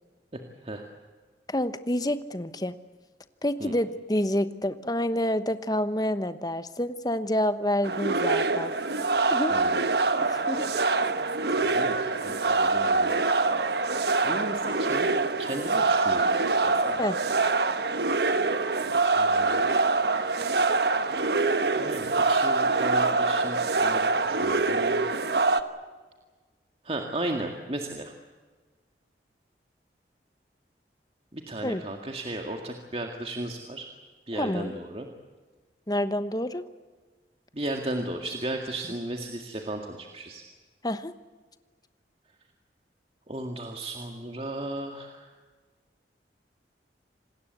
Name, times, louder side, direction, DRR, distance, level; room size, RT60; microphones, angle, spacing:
voice 1, 0.3-0.8 3.6-3.7 9.5-9.8 11.6-13.2 14.2-16.4 16.6-17.0 19.1-19.7 21.7-25.0 26.8-28.1 31.3-33.9 34.3-35.1 37.5-40.4 43.3-45.3, right 1 dB, 35° right, 3 dB, 2.0 m, -35 dB
voice 2, 1.5-2.7 3.4-8.7 9.3-9.6 10.2-10.7 17.0-17.2 31.6-31.8 34.3-34.7 35.9-36.6 40.8-41.1, left 1 dB, 20° left, 11 dB, 1.1 m, -28 dB
sound 1, 7.8-25.6, right 3 dB, 65° right, 1.3 m, -25 dB
27.0 x 20.0 x 8.2 m, 1.4 s
head